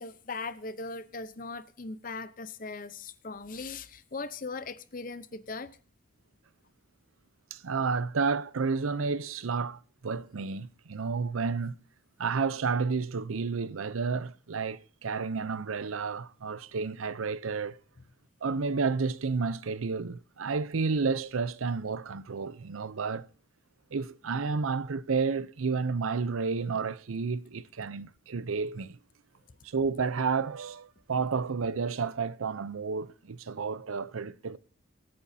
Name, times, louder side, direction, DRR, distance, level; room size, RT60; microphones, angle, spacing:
voice 1, 0.0-5.7, left 3 dB, 40° left, 0.7 m, -39 dB
voice 2, 7.5-11.8 12.2-17.8 18.4-23.3 23.9-29.0 29.6-34.6, right 4 dB, 85° right, 0.6 m, -31 dB
25.0 x 8.5 x 2.7 m
head